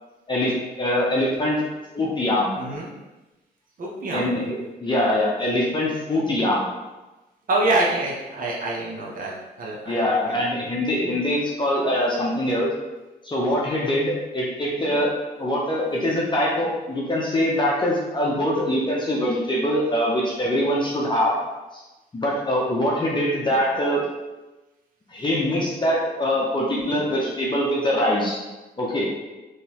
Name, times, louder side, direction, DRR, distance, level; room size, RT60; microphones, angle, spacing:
voice 1, 0.3-1.6 1.9-2.5 4.1-6.7 9.9-12.7 13.2-15.1 15.4-21.3 21.7-21.8 22.1-24.0 25.1-28.4 28.8-29.1, left 1 dB, 25° left, -4 dB, 0.8 m, -23 dB
voice 2, 2.6-2.9 3.8-4.3 7.5-9.3 9.6-10.0 10.2-10.4, right 2 dB, 50° right, -4 dB, 0.9 m, -25 dB
3.7 x 3.1 x 2.9 m, 1.1 s
cardioid pair, 80°, 18 cm